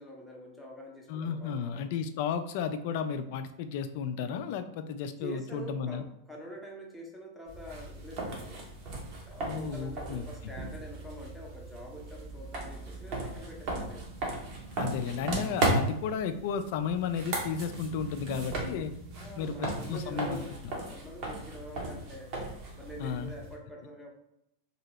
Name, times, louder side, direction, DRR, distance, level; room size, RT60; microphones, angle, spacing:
voice 1, 0.0-1.9 5.2-8.6 9.3-14.1 19.1-22.3 22.8-24.1, equal, ahead, -2 dB, 0.7 m, -45 dB
voice 2, 1.1-6.0 9.5-10.2 14.8-18.9 19.4-20.4 23.0-23.3, left 7 dB, 50° left, 9 dB, 0.3 m, -33 dB
sound 1, 7.5-23.5, right 2 dB, 40° right, 0.8 m, -36 dB
2.8 x 2.7 x 3.0 m, 0.80 s
figure-of-eight pair, 90°, 0 cm